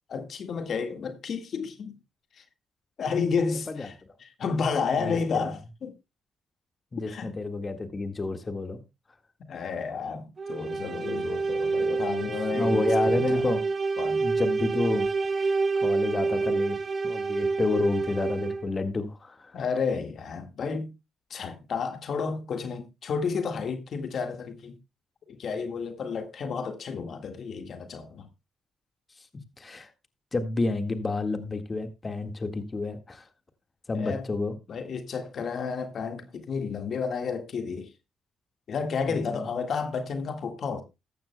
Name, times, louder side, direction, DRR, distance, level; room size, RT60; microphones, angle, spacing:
voice 1, 0.1-2.0 2.4-2.5 3.0-3.9 4.2-5.9 7.1-7.3 9.4-13.4 14.0-14.3 19.5-20.9 21.3-24.8 25.3-28.3 33.9-34.2 34.7-37.9 38.7-40.8, left 5 dB, 60° left, 1.7 m, -31 dB
voice 2, 5.0-5.5 6.9-8.8 12.5-13.7 14.2-16.8 17.0-19.5 29.2-29.3 29.6-29.9 30.3-33.3 33.9-34.5 39.1-39.4, left 3 dB, 30° left, 1.7 m, -30 dB
sound 1, 10.4-18.8, right 4 dB, 45° right, 1.5 m, -27 dB
14.5 x 12.0 x 2.2 m
supercardioid pair, 65°, 0 cm